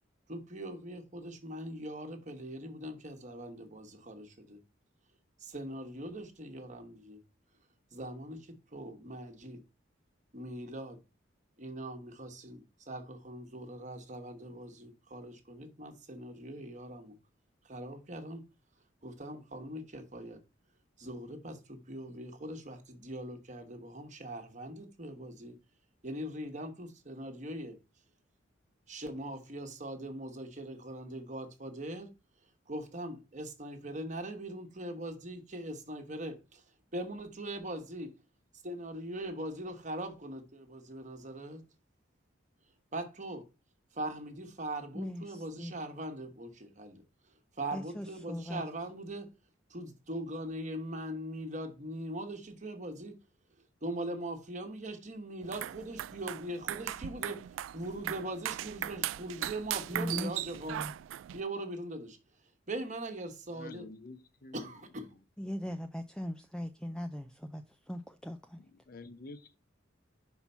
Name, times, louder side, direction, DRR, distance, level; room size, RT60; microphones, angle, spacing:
voice 1, 0.3-4.6 5.4-7.2 7.9-9.6 10.3-11.0 11.6-17.1 17.6-18.4 19.0-20.4 21.0-25.5 26.0-27.8 28.9-32.1 32.7-36.6 36.9-38.1 38.6-41.6 42.9-43.5 43.9-47.0 47.6-49.3 49.7-53.2 53.8-60.8 61.3-62.2 62.7-63.9 64.5-65.1, right 1 dB, 40° right, 1.2 m, -41 dB
voice 2, 44.9-45.7 47.7-48.6 59.9-60.9 65.4-68.6, equal, 5° left, 0.4 m, -39 dB
sound 1, 55.4-61.4, right 12 dB, 90° right, 0.3 m, -38 dB
voice 3, 63.5-64.7 68.9-69.6, left 2 dB, 50° left, 0.6 m, -48 dB
5.7 x 4.4 x 5.5 m
head